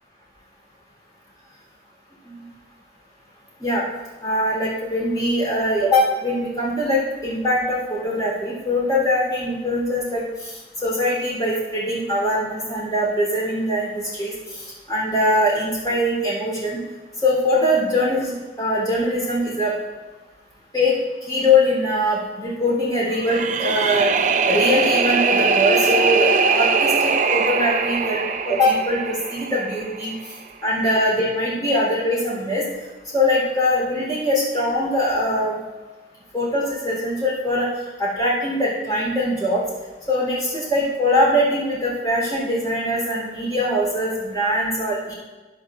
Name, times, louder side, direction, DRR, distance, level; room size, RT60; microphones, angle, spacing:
voice 1, 4.2-10.5 10.8-16.8 17.2-19.7 20.7-24.1 24.5-30.1 30.6-32.6 33.1-35.6 36.3-37.7 38.0-39.6 40.1-45.1, left 1 dB, 20° left, -6 dB, 3.6 m, -22 dB
sound 1, 23.1-30.2, right 5 dB, 45° right, 0.5 m, -21 dB
12.0 x 10.5 x 2.6 m, 1.2 s
head